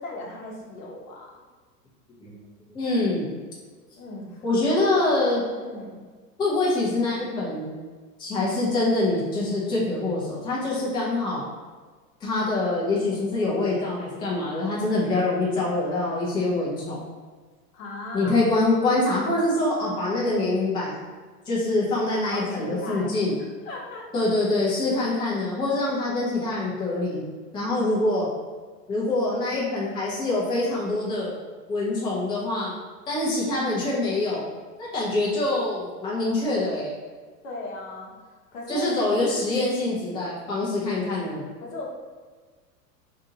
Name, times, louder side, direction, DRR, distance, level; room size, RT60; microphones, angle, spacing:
voice 1, 0.0-1.4 4.0-4.8 5.5-6.0 14.8-15.1 17.7-18.4 22.0-23.1 23.6-24.3 37.4-38.1 38.5-39.1 39.3-39.5 41.6-41.9, left 2 dB, 55° left, -2 dB, 1.0 m, -37 dB
voice 2, 2.7-3.3 4.4-5.4 6.4-7.7 8.2-11.4 12.2-17.0 18.1-21.0 21.5-23.3 24.1-27.2 27.5-28.3 28.9-31.3 31.7-32.7 33.1-34.4 34.8-36.9 38.7-41.4, left 2 dB, 10° left, -6 dB, 0.6 m, -25 dB
2.9 x 2.6 x 3.8 m, 1.4 s
figure-of-eight pair, 90°, 49 cm